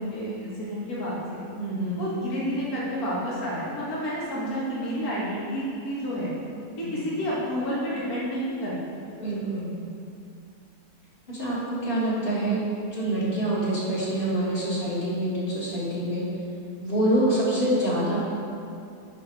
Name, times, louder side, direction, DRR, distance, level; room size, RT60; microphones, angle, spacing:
voice 1, 0.0-1.4 2.0-6.3 6.8-9.0, equal, 60° left, -8 dB, 2.2 m, -30 dB
voice 2, 1.6-2.1 6.8-6.9 9.2-9.7 11.3-12.6 12.9-16.2 16.8-18.2, right 1 dB, 30° left, -9 dB, 2.1 m, -26 dB
10.5 x 4.4 x 4.6 m, 2.6 s
omnidirectional pair, 1.8 m